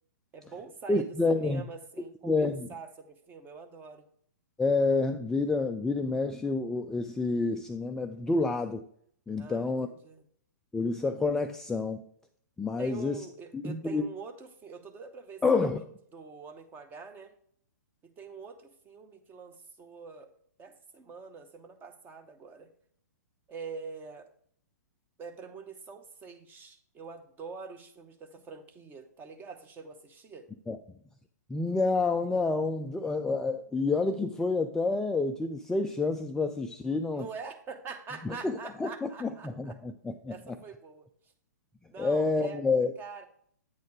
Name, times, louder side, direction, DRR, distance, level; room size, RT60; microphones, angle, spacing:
voice 1, 0.3-4.1 9.4-10.3 12.8-15.8 16.1-17.3 18.2-20.3 20.6-22.7 23.5-24.3 25.2-30.5 37.1-39.8 40.3-41.3 41.9-42.6 43.0-43.2, right 5 dB, 20° right, 7 dB, 1.0 m, -45 dB
voice 2, 0.9-1.6 2.2-2.7 4.6-8.8 9.3-9.9 10.7-12.0 12.6-13.2 13.5-14.0 15.4-15.8 30.7-30.8 31.5-37.2 38.2-38.5 38.8-40.3 42.0-42.9, left 3 dB, 5° left, 5 dB, 0.3 m, -28 dB
8.6 x 4.2 x 4.8 m, 0.63 s
figure-of-eight pair, 120°, 9 cm